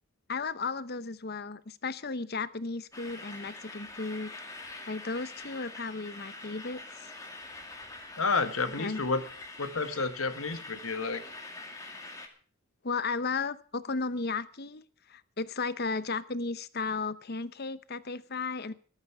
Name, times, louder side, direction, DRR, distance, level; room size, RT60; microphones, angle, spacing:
voice 1, 0.3-4.3 4.6-7.1 8.8-9.0 12.8-14.8 15.1-18.7, left 4 dB, 45° left, 15 dB, 0.9 m, -34 dB
sound 1, 2.9-12.3, left 2 dB, 15° left, 2.3 m, -45 dB
voice 2, 8.2-9.2 9.6-11.2, left 4 dB, 70° left, 10 dB, 1.5 m, -30 dB
14.0 x 13.5 x 5.9 m, 0.40 s
head